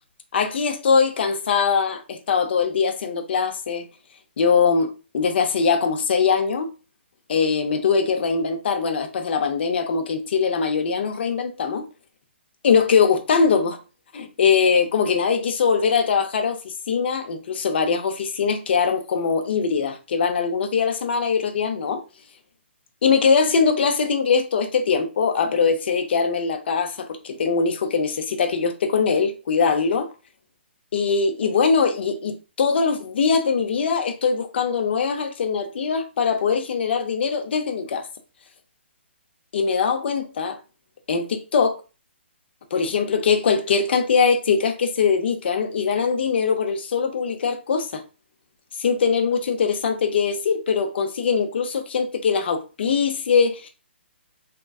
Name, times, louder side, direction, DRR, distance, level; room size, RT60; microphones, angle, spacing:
voice 1, 0.3-3.9 4.4-6.7 7.3-11.8 12.6-13.8 14.1-22.0 23.0-30.1 30.9-38.1 39.5-40.6 41.1-41.8 42.7-48.0 48.8-53.7, left 5 dB, 60° left, 0.5 m, -22 dB
3.5 x 2.2 x 2.3 m
hypercardioid pair, 150°, 7 cm